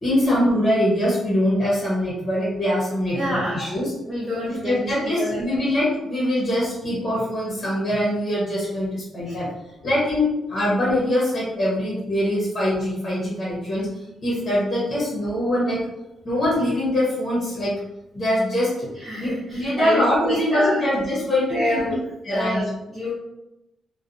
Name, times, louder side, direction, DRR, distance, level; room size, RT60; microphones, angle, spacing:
voice 1, 0.0-3.9 4.5-9.5 9.8-13.9 14.2-15.8 16.2-17.8 18.1-18.9 19.2-22.0 22.2-22.6, left 1 dB, 25° left, -5 dB, 0.8 m, -23 dB
voice 2, 3.1-3.7 4.1-4.7 5.0-5.4 9.2-9.3 19.0-20.8 21.5-22.0 22.3-23.1, left 1 dB, 20° right, -7 dB, 0.6 m, -27 dB
2.8 x 2.1 x 2.5 m, 0.91 s
wide cardioid pair, 160°, 0 cm